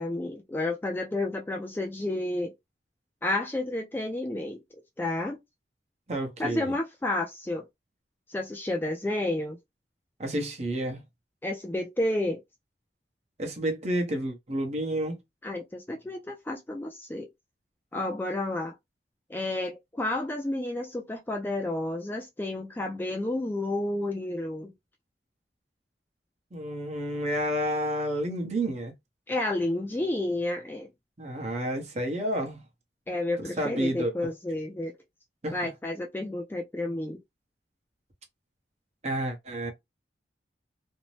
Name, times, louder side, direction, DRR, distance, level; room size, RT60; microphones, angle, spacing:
voice 1, 0.0-2.5 3.2-4.6 5.0-5.4 6.4-7.6 8.3-9.6 11.4-12.4 15.4-17.3 17.9-18.7 19.3-24.7 29.3-30.9 33.1-34.9 35.5-37.2, left 1 dB, 10° left, 0.3 m, -31 dB
voice 2, 6.1-6.7 10.2-11.0 13.4-15.2 26.5-28.9 31.2-32.6 33.6-34.3 35.4-35.7 39.0-39.7, right 1 dB, 40° right, 0.8 m, -30 dB
2.6 x 2.0 x 3.1 m
head